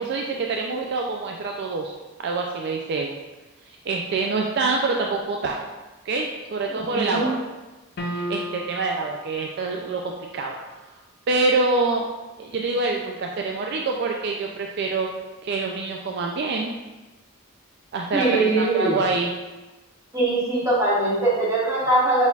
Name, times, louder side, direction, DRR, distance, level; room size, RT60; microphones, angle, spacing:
voice 1, 0.0-1.9 2.2-3.1 3.7-5.6 6.1-7.4 8.0-10.5 11.3-12.1 12.4-15.1 15.4-16.7 17.9-19.3, right 3 dB, 50° right, 1 dB, 0.3 m, -26 dB
voice 2, 6.7-7.3 18.1-19.0 20.1-22.3, right 2 dB, 15° right, -7 dB, 1.2 m, -22 dB
sound 1, 8.0-9.0, equal, 50° left, 0.4 m, -31 dB
5.3 x 4.1 x 2.4 m, 1.1 s
head